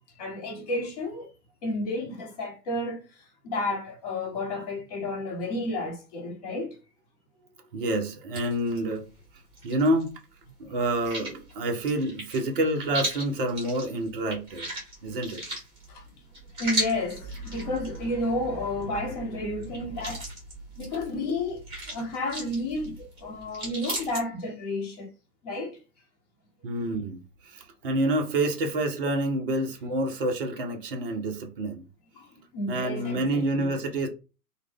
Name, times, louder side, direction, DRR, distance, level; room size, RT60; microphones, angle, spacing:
voice 1, 0.2-1.3 1.6-6.8 15.9-16.0 16.6-20.2 20.8-21.6 21.9-25.1 25.4-25.8 32.1-33.7, left 2 dB, 25° left, 0.9 m, -31 dB
voice 2, 7.7-9.1 9.6-10.1 10.6-14.7 15.0-15.4 26.6-31.8 32.7-34.1, right 1 dB, 40° right, 0.5 m, -28 dB
sound 1, 8.3-10.2 10.4-24.2, right 1 dB, 10° right, 1.2 m, -37 dB
3.0 x 2.1 x 3.5 m
figure-of-eight pair, 120°, 47 cm